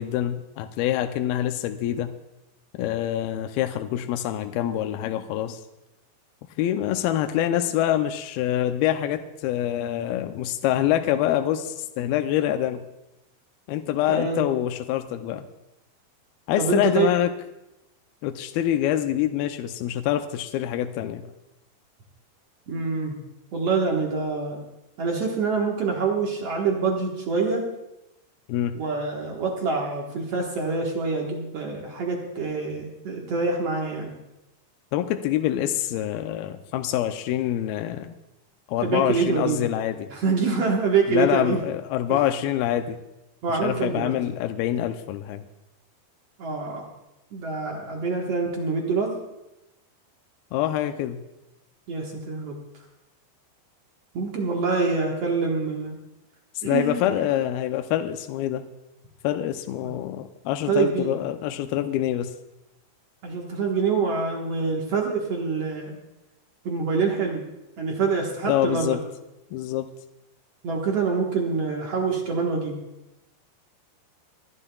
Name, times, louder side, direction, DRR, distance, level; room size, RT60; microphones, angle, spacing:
voice 1, 0.0-2.1 2.8-5.6 6.6-12.8 13.7-15.5 16.5-17.3 18.2-21.3 28.5-28.8 34.9-38.1 38.7-40.1 41.1-43.0 43.6-45.5 50.5-51.2 56.6-58.6 59.2-62.3 68.5-69.0 69.5-69.9, left 12 dB, 80° left, 7 dB, 2.2 m, -25 dB
voice 2, 14.1-14.4 16.6-17.1 22.7-23.2 23.5-24.6 25.0-27.6 28.7-34.1 38.8-39.6 40.1-41.6 42.1-42.2 43.4-44.2 46.4-46.9 47.3-49.1 51.9-52.6 54.1-56.0 56.6-57.0 57.2-57.3 59.8-59.9 60.7-61.1 63.2-65.9 66.6-67.4 67.8-69.0 70.6-72.8, right 4 dB, 60° right, 0 dB, 1.6 m, -25 dB
29.5 x 12.0 x 2.3 m, 0.93 s
omnidirectional pair, 4.7 m